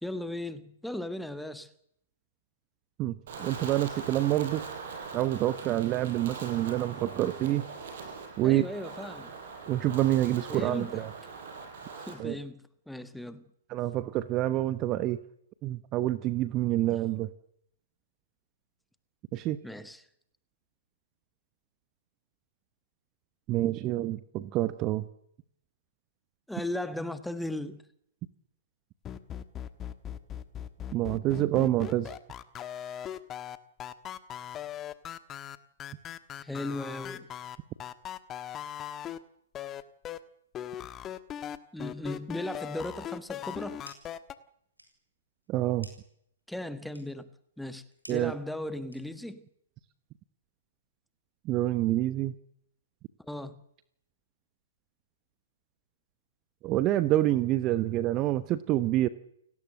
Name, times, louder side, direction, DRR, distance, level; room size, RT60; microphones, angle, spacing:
voice 1, 0.0-1.7 8.4-9.3 10.5-11.0 12.0-13.4 16.9-17.0 19.6-20.0 26.5-27.8 36.4-37.3 41.7-43.8 46.5-47.3 47.6-47.8 48.1-49.4 53.2-53.6, left 1 dB, ahead, 1.5 m, -37 dB
voice 2, 3.0-4.6 5.1-7.7 8.4-8.7 9.7-11.1 12.2-12.4 13.7-15.2 15.6-17.3 19.3-19.6 23.5-25.0 30.9-32.2 45.5-45.9 48.1-48.3 51.4-52.3 56.6-59.1, right 14 dB, 25° right, 1.0 m, -27 dB
Wind, 3.3-12.1, right 4 dB, 45° right, 7.5 m, -42 dB
sound 1, 29.0-39.2 39.5-40.2 40.5-44.3, left 10 dB, 20° left, 1.3 m, -39 dB
sound 2, 43.7-44.2 44.5-49.4, equal, 90° right, 7.4 m, -55 dB
29.5 x 18.5 x 7.8 m
figure-of-eight pair, 115°, 0 cm